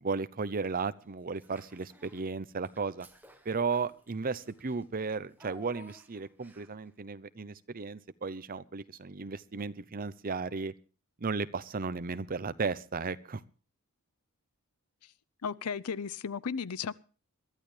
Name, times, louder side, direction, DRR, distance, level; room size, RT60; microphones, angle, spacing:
voice 1, 0.0-3.1 3.4-10.7 11.2-13.4, right 4 dB, 40° right, 0.7 m, -35 dB
Child speech kid speaking / Bathtub (filling or washing), 1.3-2.3 2.6-6.9, right 1 dB, 10° right, 1.6 m, -57 dB
voice 2, 15.4-16.9, left 6 dB, 90° left, 0.6 m, -35 dB
22.0 x 12.5 x 3.3 m
head